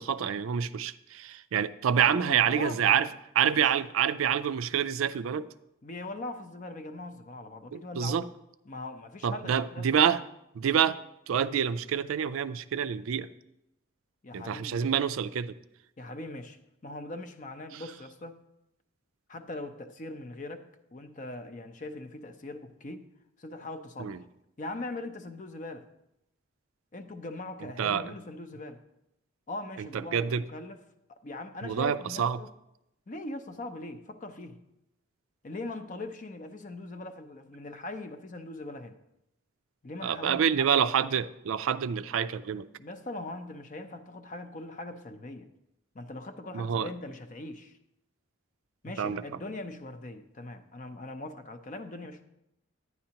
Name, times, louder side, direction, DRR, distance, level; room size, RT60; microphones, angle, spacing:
voice 1, 0.0-3.1 3.4-5.5 7.7-8.3 9.2-10.2 10.6-11.0 11.3-13.3 14.3-15.5 17.7-17.8 24.0-24.2 27.8-28.1 29.8-30.4 31.6-32.4 40.0-42.7 46.5-46.9 49.0-49.2, right 8 dB, 80° right, 14 dB, 0.4 m, -27 dB
voice 2, 2.0-3.1 3.4-3.7 5.8-8.2 8.7-10.2 14.2-14.9 16.0-16.6 16.8-18.4 19.3-23.1 23.4-24.3 24.6-25.9 26.9-28.8 29.5-30.8 31.1-32.5 33.1-34.6 35.4-39.0 39.8-40.7 42.8-45.5 45.9-47.7 48.8-52.2, left 2 dB, 35° left, 9 dB, 0.5 m, -41 dB
10.5 x 9.5 x 2.9 m, 0.85 s
head